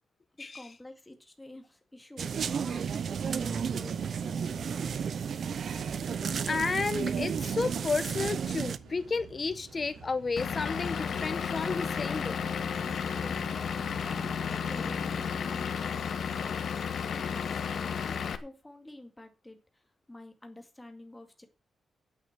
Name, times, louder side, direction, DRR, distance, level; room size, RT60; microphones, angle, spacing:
voice 1, 0.4-2.9 3.2-5.1 13.1-16.6 16.9-19.6 20.1-21.5, left 1 dB, 10° left, 2.1 m, -49 dB
sound 1, 2.2-8.8, right 7 dB, 55° right, 0.7 m, -32 dB
sound 2, 5.7-15.5, right 5 dB, 80° right, 6.1 m, -50 dB
voice 2, 6.4-12.9, left 4 dB, 30° left, 1.0 m, -32 dB
Vehicle / Engine, 10.4-18.4, left 7 dB, 60° left, 1.3 m, -33 dB
9.4 x 8.4 x 8.0 m
wide cardioid pair, 155°, 0 cm